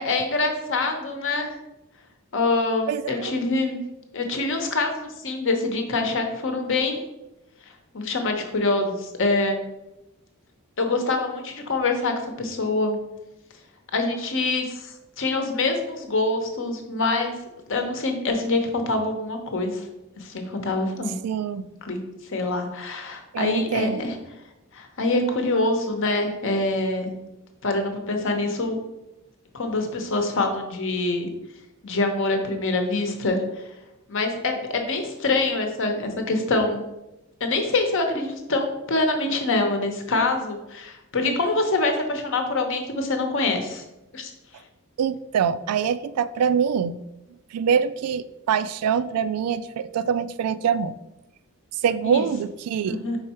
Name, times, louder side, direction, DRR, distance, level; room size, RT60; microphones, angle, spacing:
voice 1, 0.0-1.6 2.3-3.8 4.1-7.0 7.9-9.6 10.8-13.0 13.9-17.3 17.7-19.9 20.2-21.2 21.5-24.2 24.7-27.1 27.6-28.8 29.5-31.3 31.8-33.6 34.1-36.8 37.4-43.8 44.1-44.3 52.0-52.3 52.8-53.2, left 2 dB, 60° left, 5 dB, 0.9 m, -25 dB
voice 2, 2.9-3.3 21.2-21.7 23.3-24.0 45.0-47.0 47.5-51.0 51.8-53.0, right 7 dB, 85° right, 14 dB, 0.3 m, -24 dB
4.8 x 4.6 x 4.3 m, 0.96 s
head